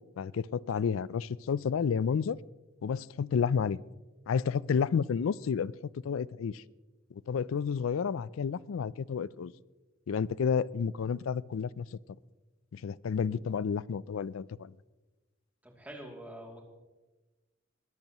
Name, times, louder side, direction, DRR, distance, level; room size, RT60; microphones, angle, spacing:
voice 1, 0.2-2.4 2.8-3.8 4.3-5.7 6.0-6.6 7.1-9.5 10.1-12.0 12.7-14.7, left 6 dB, 80° left, 21 dB, 0.4 m, -31 dB
voice 2, 15.6-16.6, right 1 dB, 10° right, -1 dB, 2.6 m, -45 dB
21.0 x 14.0 x 3.0 m, 1.2 s
head